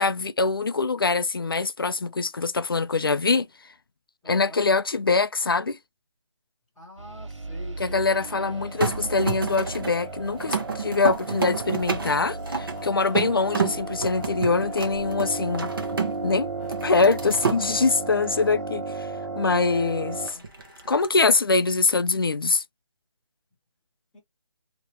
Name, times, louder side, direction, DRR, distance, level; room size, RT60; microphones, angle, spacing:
voice 1, 0.0-3.5 4.3-5.8 7.8-15.7 16.2-16.5 16.8-19.1 19.4-20.4 20.9-22.6, left 4 dB, 50° left, 0.4 m, -23 dB
voice 2, 4.2-4.6 6.7-8.4 19.9-20.5 24.1-24.2, left 2 dB, ahead, 0.6 m, -46 dB
sound 1, 7.0-20.3, right 3 dB, 75° right, 1.2 m, -34 dB
sound 2, 8.8-16.3 16.6-17.6 20.3-21.1, right 5 dB, 45° right, 1.0 m, -30 dB
sound 3, 11.8-16.1 16.6-21.4, left 3 dB, 30° left, 2.6 m, -53 dB
4.2 x 2.9 x 3.0 m
hypercardioid pair, 175°, 16 cm